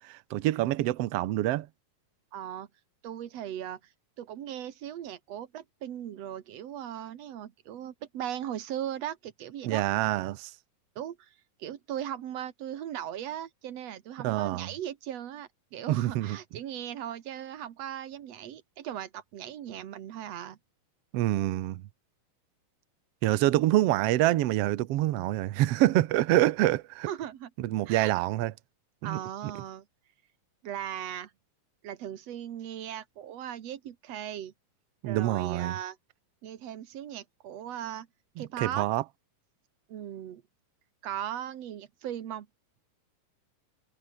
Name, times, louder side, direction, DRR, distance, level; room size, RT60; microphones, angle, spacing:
voice 1, 0.0-1.7 9.6-10.5 14.2-14.7 15.9-16.4 21.1-21.8 23.2-27.1 27.6-28.5 29.0-29.2 35.0-35.7 38.6-39.0, right 15 dB, 85° right, 1.3 m, -26 dB
voice 2, 2.3-2.7 3.0-3.8 4.2-9.8 11.0-11.3 11.6-20.6 27.0-27.5 27.9-28.1 29.0-29.9 30.6-31.3 31.8-34.5 35.1-36.0 36.4-38.1 38.4-38.9 39.9-40.4 41.0-42.5, right 10 dB, 55° right, 2.3 m, -38 dB
omnidirectional pair, 3.9 m